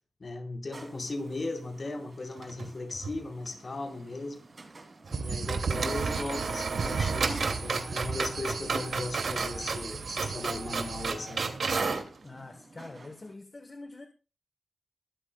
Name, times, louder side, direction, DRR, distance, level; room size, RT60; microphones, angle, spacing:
voice 1, 0.2-4.4 5.2-11.5, left 2 dB, 45° left, 4.4 m, -37 dB
sound 1, 0.7-13.4, right 3 dB, 35° right, 3.0 m, -50 dB
sound 2, 2.4-3.2 3.5-3.6 5.0-5.2 5.5-12.1, right 4 dB, 75° right, 2.6 m, -33 dB
voice 2, 5.1-5.6 12.2-14.0, left 3 dB, 30° left, 1.4 m, -45 dB
sound 3, 5.1-11.1, right 5 dB, 90° right, 1.3 m, -35 dB
22.5 x 13.5 x 2.4 m
wide cardioid pair, 150°, 0 cm